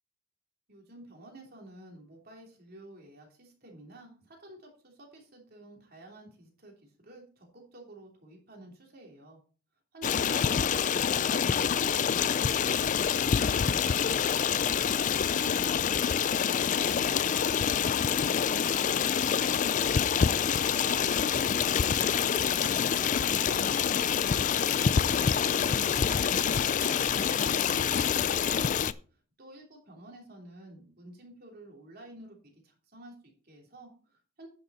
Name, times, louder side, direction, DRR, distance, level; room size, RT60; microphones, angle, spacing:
voice 1, 0.7-9.4 9.9-13.0 13.4-16.3 20.4-24.6 25.2-28.6 29.4-34.5, right 1 dB, 45° right, 0 dB, 3.2 m, -51 dB
Stream, 10.0-28.9, left 7 dB, 35° left, 0.3 m, -26 dB
10.0 x 6.9 x 4.2 m, 0.40 s
head